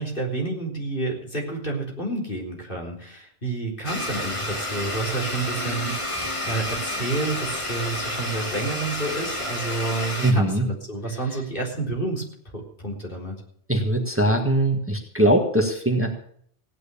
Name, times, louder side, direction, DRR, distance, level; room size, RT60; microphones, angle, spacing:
voice 1, 0.0-12.2 12.5-13.4, right 2 dB, 55° left, -1 dB, 4.1 m, -29 dB
Domestic sounds home sounds, 3.8-10.3, left 1 dB, 30° left, 1.9 m, -30 dB
voice 2, 10.2-10.7 11.3-11.4 13.7-16.1, right 1 dB, 10° right, 3 dB, 1.8 m, -21 dB
16.5 x 9.6 x 6.9 m, 0.63 s
omnidirectional pair, 1.0 m